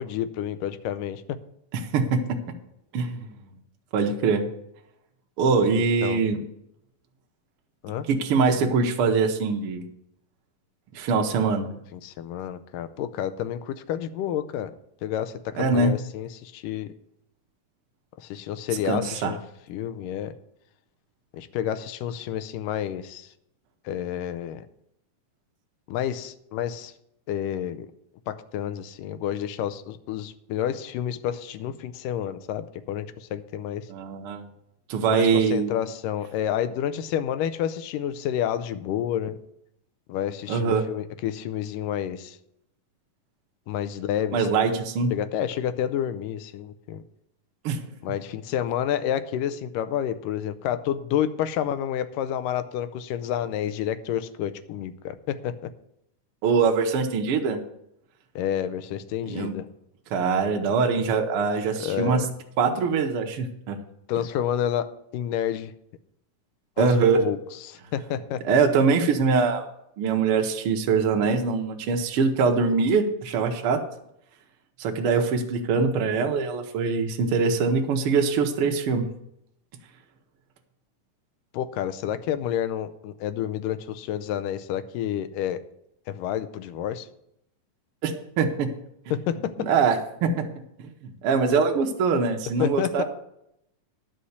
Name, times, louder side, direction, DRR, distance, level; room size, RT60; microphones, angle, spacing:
voice 1, 0.0-1.4 5.7-6.2 7.8-8.1 11.9-14.7 15.0-16.9 18.2-19.4 19.7-20.3 21.3-23.3 23.9-24.7 25.9-26.9 27.3-27.9 28.3-33.9 35.1-39.4 40.1-42.4 43.7-44.5 45.1-47.0 48.0-55.7 58.4-59.7 61.8-62.3 64.1-65.7 66.8-67.4 67.6-68.4 81.5-85.6 86.1-87.1 89.1-89.7 92.6-93.0, left 10 dB, 85° left, 12 dB, 2.3 m, -29 dB
voice 2, 1.9-2.4 2.9-3.3 3.9-4.4 5.4-6.4 8.1-9.9 10.9-11.8 15.6-15.9 18.8-19.3 33.9-34.5 34.9-35.7 40.5-40.9 44.3-45.1 47.6-47.8 56.4-57.6 59.3-59.5 60.1-62.2 62.6-63.8 66.8-67.2 68.5-69.7 70.0-73.8 74.8-79.1 88.0-88.7 89.6-90.4 90.8-93.0, right 5 dB, 70° right, 3 dB, 1.3 m, -23 dB
11.5 x 5.7 x 8.0 m, 0.77 s
omnidirectional pair, 3.8 m